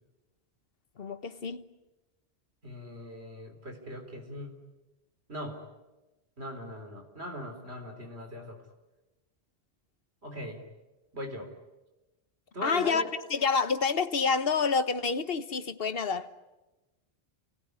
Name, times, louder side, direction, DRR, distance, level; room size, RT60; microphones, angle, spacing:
voice 1, 1.0-1.6 12.6-13.0 13.3-16.3, left 5 dB, 60° left, 1.4 m, -28 dB
voice 2, 2.6-4.6 5.3-5.6 6.4-8.6 10.2-10.6 11.1-11.5 12.5-13.1, equal, 70° right, 4.2 m, -40 dB
29.5 x 19.5 x 9.7 m
omnidirectional pair, 1.1 m